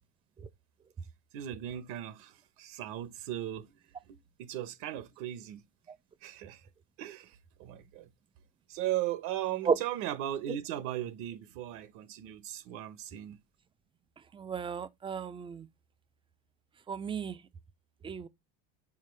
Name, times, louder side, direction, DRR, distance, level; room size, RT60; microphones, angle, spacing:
voice 1, 1.3-5.6 6.2-6.7 7.0-8.1 8.7-13.4, right 12 dB, 65° right, 0.9 m, -37 dB
voice 2, 14.3-15.7 16.9-17.4 18.0-18.3, right 6 dB, 15° right, 0.4 m, -33 dB
7.5 x 4.2 x 3.2 m
supercardioid pair, 130°, 36 cm